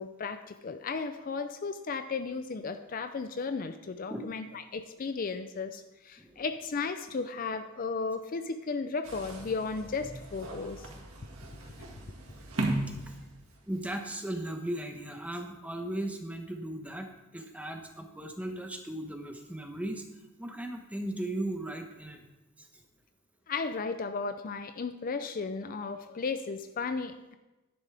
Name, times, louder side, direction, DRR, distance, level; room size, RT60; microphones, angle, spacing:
voice 1, 0.0-10.9 11.8-11.9 23.5-27.1, left 4 dB, 40° left, 9 dB, 0.4 m, -35 dB
sound 1, 9.0-13.8, right 2 dB, 85° right, 1.9 m, -37 dB
voice 2, 13.6-20.0 20.4-22.2 22.6-22.8, right 1 dB, 5° right, 4 dB, 0.9 m, -37 dB
11.0 x 10.0 x 3.4 m, 1.1 s
head